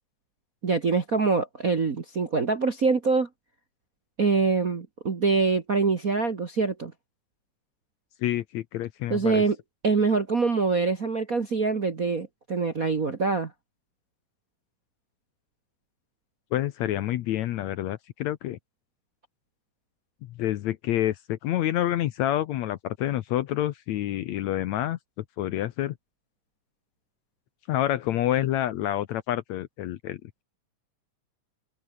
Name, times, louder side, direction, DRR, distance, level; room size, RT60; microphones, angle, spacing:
voice 1, 0.6-3.3 4.2-6.9 9.1-9.6 9.8-13.5, right 4 dB, 40° right, 1.2 m, -24 dB
voice 2, 8.2-9.4 16.5-18.6 20.4-25.0 25.4-25.9 27.7-30.2, left 13 dB, 70° left, 1.9 m, -28 dB
omnidirectional pair, 3.8 m